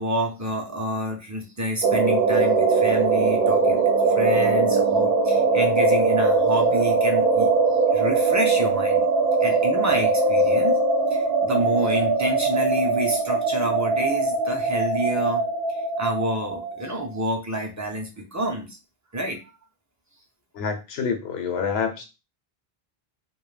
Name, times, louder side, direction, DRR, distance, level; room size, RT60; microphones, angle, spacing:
voice 1, 0.0-7.5 7.9-9.0 9.4-10.8 11.1-15.4 15.7-18.8 19.1-19.4, equal, 25° right, 0.4 m, -28 dB
sound 1, 1.8-17.2, right 3 dB, 65° right, 0.8 m, -21 dB
voice 2, 20.5-22.0, left 6 dB, 80° left, 0.9 m, -27 dB
2.3 x 2.1 x 3.1 m
omnidirectional pair, 1.1 m